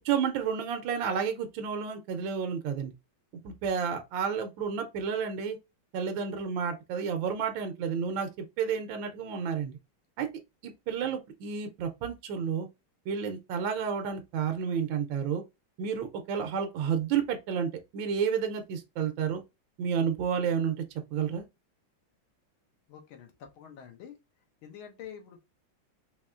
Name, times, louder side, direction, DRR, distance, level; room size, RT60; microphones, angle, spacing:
voice 1, 0.0-2.9 3.4-5.6 5.9-9.8 10.2-10.3 10.6-12.7 13.1-15.4 15.8-19.4 19.8-20.8 21.1-21.4, right 7 dB, 75° right, 1.3 m, -31 dB
voice 2, 22.9-24.2 24.6-25.4, left 8 dB, 80° left, 1.6 m, -47 dB
4.1 x 3.1 x 2.4 m
omnidirectional pair, 2.3 m